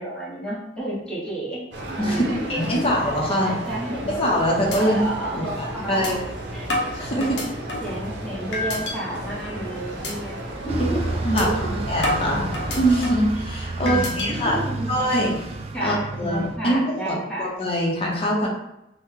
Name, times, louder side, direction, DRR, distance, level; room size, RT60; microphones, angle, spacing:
voice 1, 0.0-1.6 2.0-2.9 3.3-4.2 4.8-6.2 6.5-6.7 7.2-7.3 7.8-10.4 10.6-11.8 12.2-12.6 13.8-14.9 15.7-17.5, right 1 dB, 5° left, -5 dB, 0.9 m, -31 dB
sound 1, 1.7-13.1, right 1 dB, 75° right, 0.6 m, -34 dB
voice 2, 2.5-3.5 4.1-6.2 6.9-7.4 7.7-7.8 11.2-11.5 11.9-12.4 12.8-14.6 14.9-15.3 15.8-18.5, equal, 35° left, -3 dB, 0.7 m, -23 dB
sound 2, 4.2-4.3 4.7-4.8 5.2-5.3 6.0-6.1 6.7-8.0 8.5-9.0 9.4-9.6 10.0-10.1 10.5-10.7 11.4-11.5 12.0-13.3 13.9-14.3, left 2 dB, 70° left, 0.7 m, -28 dB
Bus, 10.7-16.6, right 2 dB, 35° right, 0.3 m, -30 dB
2.9 x 2.2 x 3.6 m, 0.86 s
head